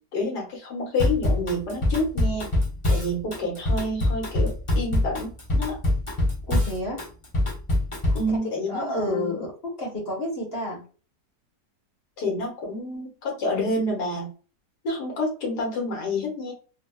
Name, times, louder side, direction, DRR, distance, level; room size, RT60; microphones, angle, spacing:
voice 1, 0.1-2.5 2.9-5.8 8.1-9.5 12.2-14.3 14.8-16.5, left 1 dB, 80° left, -1 dB, 1.8 m, -28 dB
Drum kit / Drum, 1.0-8.3, left 1 dB, 25° left, 0.9 m, -24 dB
voice 2, 6.5-7.0 8.1-8.2 8.7-10.8, equal, 40° left, -2 dB, 1.2 m, -30 dB
3.8 x 2.3 x 2.2 m, 0.36 s
omnidirectional pair, 1.7 m